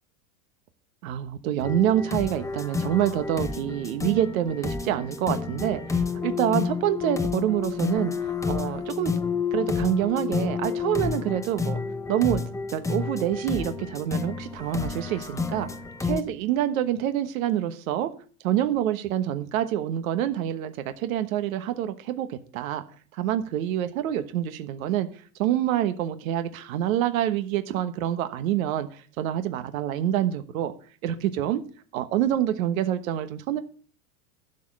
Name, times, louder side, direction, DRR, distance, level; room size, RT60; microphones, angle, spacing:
voice 1, 1.0-8.1 8.5-9.1 9.5-11.8 12.1-15.7 16.0-18.1 18.4-22.8 23.1-30.7 31.0-31.6 31.9-33.6, right 11 dB, 70° right, 1.3 m, -26 dB
Stepper loop - Piano Music with drums and a cow, 1.6-16.2, left 5 dB, 5° left, 0.8 m, -30 dB
12.0 x 5.4 x 7.2 m
supercardioid pair, 115°, 42 cm